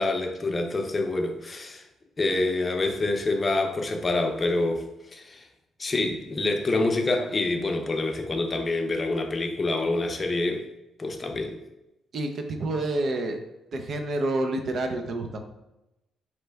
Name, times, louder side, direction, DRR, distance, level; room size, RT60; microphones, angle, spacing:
voice 1, 0.0-1.8 2.2-4.9 5.1-5.4 5.8-10.6 11.0-11.6, left 2 dB, 30° left, 4 dB, 0.6 m, -26 dB
voice 2, 12.1-13.4 13.7-15.4, right 2 dB, 55° right, 5 dB, 0.6 m, -28 dB
4.3 x 3.2 x 3.4 m, 0.92 s
cardioid pair, 90°, 0 cm